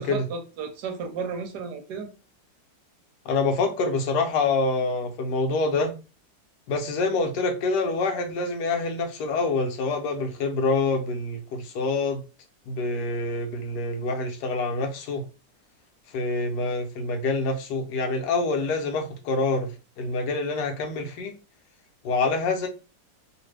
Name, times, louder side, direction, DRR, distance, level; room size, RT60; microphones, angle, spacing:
voice 1, 0.0-2.1, right 5 dB, 70° right, 1.1 m, -33 dB
voice 2, 3.3-5.9 6.7-12.2 12.7-15.2 16.1-19.7 20.0-21.3 22.0-22.7, left 3 dB, 75° left, 1.0 m, -26 dB
2.9 x 2.5 x 3.1 m
omnidirectional pair, 2.0 m